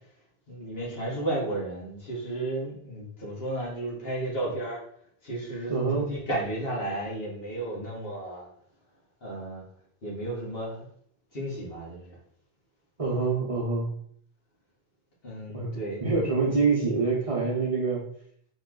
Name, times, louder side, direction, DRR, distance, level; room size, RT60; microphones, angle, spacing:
voice 1, 0.5-4.8 5.2-8.5 9.2-9.7 10.0-10.9 11.3-12.2 15.2-16.0, right 1 dB, 65° left, -5 dB, 2.1 m, -33 dB
voice 2, 5.7-6.1 13.0-13.9 15.5-15.7 16.0-18.0, right 4 dB, 35° right, -2 dB, 1.0 m, -25 dB
4.2 x 3.2 x 3.8 m, 0.64 s
omnidirectional pair, 1.1 m